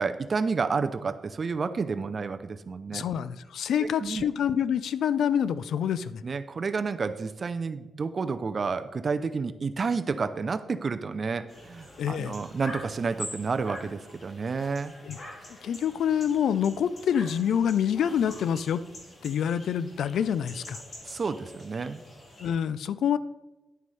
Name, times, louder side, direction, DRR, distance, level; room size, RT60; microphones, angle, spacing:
voice 1, 0.0-3.0 3.8-4.3 6.2-14.9 21.0-22.0, right 4 dB, 45° right, 11 dB, 0.5 m, -30 dB
voice 2, 2.9-6.2 12.0-12.4 15.0-15.2 15.6-18.8 19.2-20.8 22.4-23.2, left 8 dB, 90° left, 15 dB, 0.3 m, -26 dB
sound 1, 11.5-22.5, left 1 dB, 45° left, 3.3 m, -45 dB
11.0 x 9.3 x 3.3 m, 1.0 s
cardioid pair, 100°, 0 cm